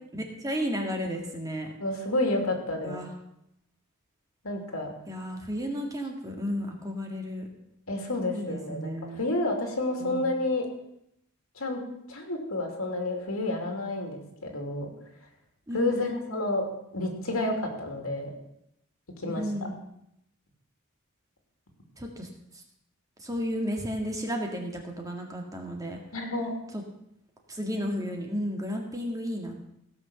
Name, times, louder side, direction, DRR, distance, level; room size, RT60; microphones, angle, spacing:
voice 1, 0.1-1.7 2.8-3.1 5.1-7.5 8.3-9.2 10.0-10.3 15.7-16.6 19.2-19.8 22.0-22.3 23.2-26.0 26.7-26.8 27.5-29.5, equal, 15° right, 1 dB, 2.0 m, -33 dB
voice 2, 1.8-3.0 4.4-4.9 7.9-8.9 9.2-10.6 11.6-11.8 12.1-14.9 15.7-16.6 16.9-18.3 19.2-19.5 26.1-26.5, left 2 dB, 75° left, 2 dB, 2.8 m, -30 dB
16.5 x 6.5 x 7.1 m, 0.79 s
head